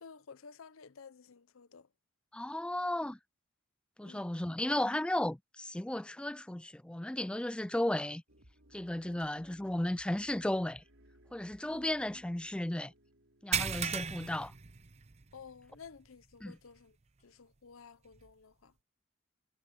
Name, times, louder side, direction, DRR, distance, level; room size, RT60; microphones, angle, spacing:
voice 1, 0.0-1.9 4.0-4.4 9.0-9.3 11.7-11.8 15.3-17.0 17.2-18.7, left 5 dB, 85° left, 0.7 m, -53 dB
voice 2, 2.3-3.2 4.0-8.2 8.7-10.8 11.3-12.9 13.4-14.5 16.4-16.6, left 1 dB, 5° left, 0.3 m, -34 dB
sound 1, 8.3-15.2, right 1 dB, 70° right, 5.2 m, -63 dB
sound 2, 13.5-15.4 15.8-16.0 16.4-16.5 18.2-18.3, right 7 dB, 35° right, 0.6 m, -35 dB
head